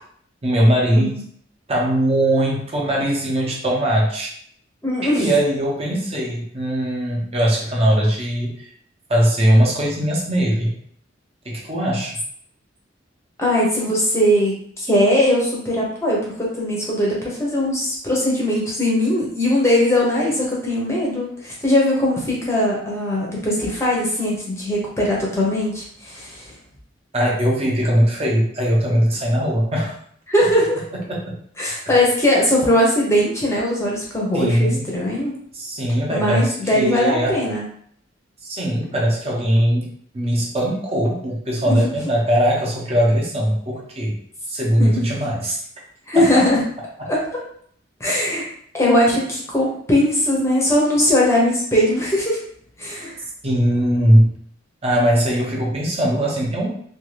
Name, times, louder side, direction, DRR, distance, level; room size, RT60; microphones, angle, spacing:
voice 1, 0.4-1.2 1.7-4.3 5.1-8.7 9.1-10.8 11.4-12.2 27.1-29.9 30.9-31.4 34.3-34.9 35.5-37.4 38.4-39.9 40.1-44.1 44.5-45.6 46.1-46.4 53.4-54.3 54.8-56.7, equal, 35° right, -2 dB, 0.8 m, -20 dB
voice 2, 4.8-5.2 13.4-26.5 30.3-30.8 31.6-35.3 36.1-37.6 41.6-41.8 44.8-45.0 46.1-46.6 47.1-47.4 48.0-48.5 48.7-52.4 52.8-53.1, left 1 dB, 15° left, -4 dB, 0.7 m, -20 dB
2.6 x 2.4 x 3.1 m, 0.62 s
head